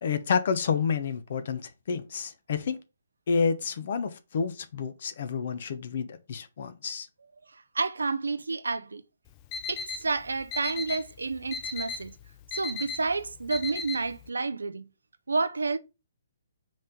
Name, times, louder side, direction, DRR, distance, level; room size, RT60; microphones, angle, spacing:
voice 1, 0.0-2.8 3.3-7.1, left 6 dB, 55° left, 1.0 m, -29 dB
voice 2, 7.7-9.0 9.7-12.1 12.5-14.9 15.3-15.8, right 3 dB, 80° right, 0.8 m, -30 dB
Alarm, 9.3-14.3, left 4 dB, 25° left, 0.4 m, -37 dB
5.2 x 3.7 x 5.3 m
figure-of-eight pair, 135°, 0 cm